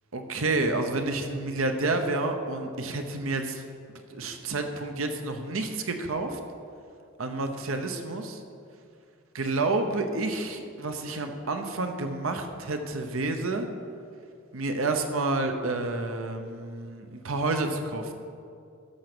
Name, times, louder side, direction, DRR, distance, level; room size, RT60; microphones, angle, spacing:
voice 1, 0.1-3.6 4.1-6.4 7.2-8.4 9.3-13.7 14.5-18.1, right 2 dB, 70° right, 6 dB, 0.9 m, -29 dB
11.5 x 7.1 x 6.1 m, 2.4 s
head